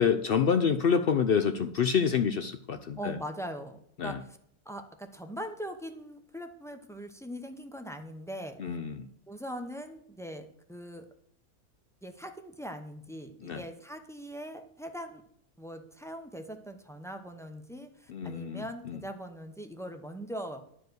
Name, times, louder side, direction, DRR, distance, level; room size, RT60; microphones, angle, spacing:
voice 1, 0.0-3.2 4.0-4.2 8.6-9.1 13.4-13.6 18.1-19.0, left 6 dB, 80° left, 9 dB, 0.5 m, -27 dB
voice 2, 3.0-4.2 4.6-8.8 9.3-11.1 12.0-15.2 15.6-20.6, equal, 5° left, 4 dB, 0.4 m, -41 dB
11.0 x 4.8 x 7.9 m, 0.67 s
omnidirectional pair, 1.6 m